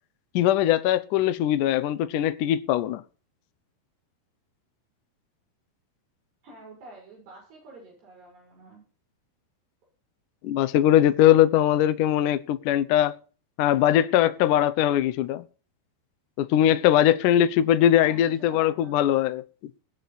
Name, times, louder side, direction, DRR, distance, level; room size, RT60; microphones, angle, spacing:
voice 1, 0.3-3.0 10.4-13.2 13.6-15.4 16.4-19.4, left 11 dB, 80° left, 1.8 m, -21 dB
voice 2, 6.4-8.8 18.0-19.0, right 2 dB, 80° right, 8.8 m, -47 dB
21.0 x 8.2 x 4.2 m
omnidirectional pair, 4.7 m